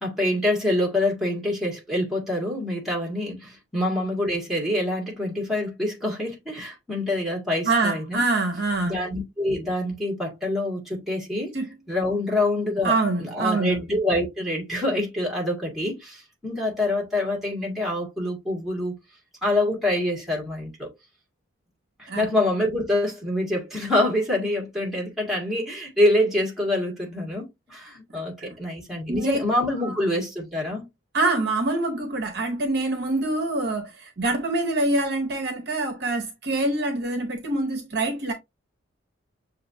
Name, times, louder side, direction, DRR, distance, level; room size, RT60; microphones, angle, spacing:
voice 1, 0.0-8.2 8.8-11.5 11.9-18.9 19.4-20.9 22.0-30.9, left 1 dB, ahead, 1.8 m, -26 dB
voice 2, 7.7-9.1 11.5-11.7 12.8-13.8 22.1-22.3 28.4-28.6 29.1-29.4 29.8-30.0 31.1-38.3, right 2 dB, 50° right, 0.8 m, -25 dB
6.6 x 2.7 x 2.6 m
head